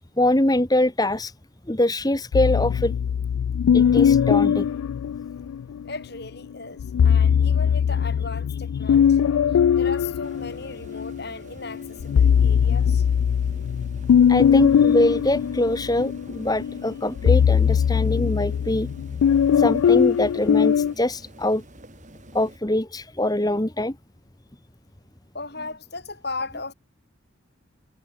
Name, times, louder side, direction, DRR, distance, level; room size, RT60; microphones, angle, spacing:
voice 1, 0.2-1.3 1.7-2.9 3.7-4.6 8.9-9.0 14.3-18.9 19.6-21.6 22.3-24.0, left 1 dB, 20° left, 1.3 m, -23 dB
sound 1, 2.3-5.8 6.8-11.2 11.7-20.9, left 8 dB, 90° left, 0.3 m, -20 dB
voice 2, 5.8-9.4 9.8-13.0 25.3-26.7, left 3 dB, 50° left, 5.8 m, -36 dB
sound 2, 10.2-22.6, right 1 dB, 35° right, 5.1 m, -48 dB
head